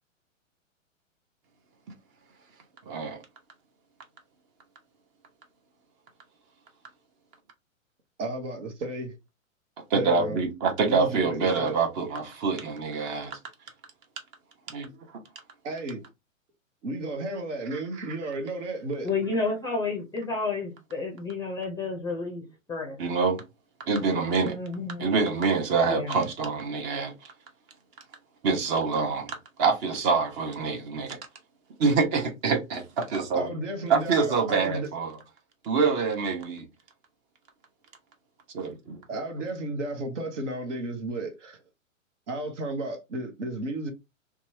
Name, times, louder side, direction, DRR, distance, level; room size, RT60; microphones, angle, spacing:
voice 1, 2.9-3.2 9.9-13.4 14.7-14.9 17.7-18.1 23.0-23.4 23.9-24.6 25.0-27.3 28.4-31.2 31.8-33.5 33.9-35.2 35.6-36.7 38.5-39.0, right 4 dB, 30° right, 0.9 m, -26 dB
voice 2, 8.2-9.2 9.9-10.4 10.8-11.8 15.6-16.0 16.8-19.1 33.3-34.9 39.1-41.6 42.3-43.9, right 2 dB, 60° right, 1.0 m, -33 dB
voice 3, 19.0-23.0 24.4-25.1 25.8-26.2, left 3 dB, 10° left, 0.6 m, -31 dB
2.9 x 2.3 x 2.6 m
hypercardioid pair, 115°, 40 cm